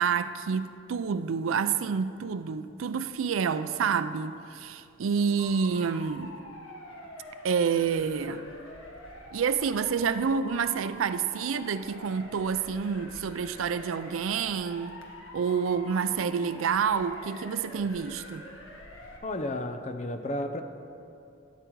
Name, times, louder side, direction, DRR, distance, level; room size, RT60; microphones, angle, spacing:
voice 1, 0.0-6.3 7.4-8.5 9.3-15.0 15.3-18.4, right 6 dB, 80° right, 0.4 m, -28 dB
Motor vehicle (road) / Siren, 5.4-19.2, left 1 dB, 85° left, 1.4 m, -46 dB
voice 2, 19.2-20.6, left 1 dB, 35° left, 0.6 m, -32 dB
12.5 x 7.8 x 4.7 m
head